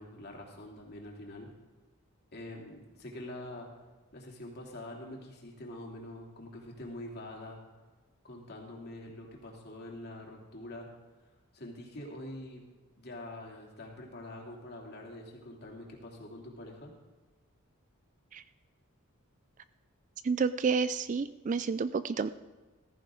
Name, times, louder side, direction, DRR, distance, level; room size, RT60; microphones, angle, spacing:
voice 1, 0.0-1.5 2.3-3.7 4.1-7.6 8.2-10.9 11.5-12.6 13.0-16.9, left 1 dB, 45° left, -1 dB, 2.8 m, -45 dB
voice 2, 20.2-22.3, right 5 dB, 35° right, 14 dB, 0.3 m, -30 dB
15.0 x 14.5 x 3.8 m, 1.3 s
head